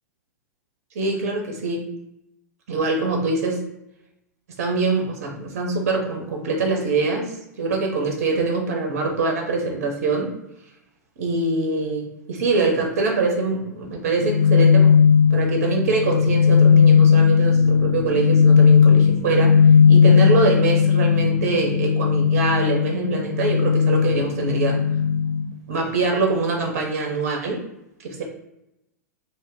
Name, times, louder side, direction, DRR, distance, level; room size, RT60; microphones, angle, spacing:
voice 1, 0.9-1.8 2.7-3.6 4.6-10.3 11.2-14.9 15.3-19.5 19.9-24.8 25.7-27.6 28.0-28.2, right 3 dB, 55° right, 1 dB, 0.7 m, -24 dB
sound 1, 14.2-25.4, left 6 dB, 75° left, 0.6 m, -16 dB
2.2 x 2.1 x 3.5 m, 0.85 s
figure-of-eight pair, 100°, 9 cm